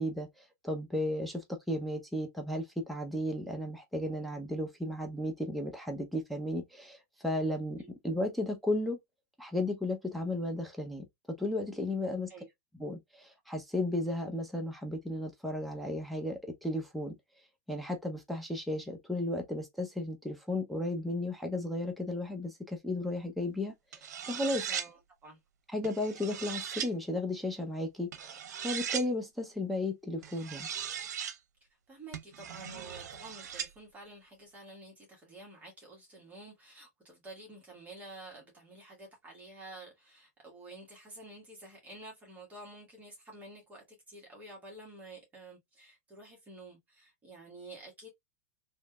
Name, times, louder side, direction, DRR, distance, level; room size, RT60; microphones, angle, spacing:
voice 1, 0.0-9.0 9.4-11.0 11.4-12.3 12.8-17.2 17.7-24.7 25.7-30.7, left 1 dB, ahead, 0.6 m, -34 dB
sound 1, 23.9-24.9 25.8-26.9 28.1-29.1 30.2-31.4 32.1-33.7, right 8 dB, 85° right, 0.6 m, -38 dB
voice 2, 24.7-25.4 31.9-48.1, right 2 dB, 20° right, 1.5 m, -50 dB
3.2 x 2.9 x 2.3 m
hypercardioid pair, 135°, 9 cm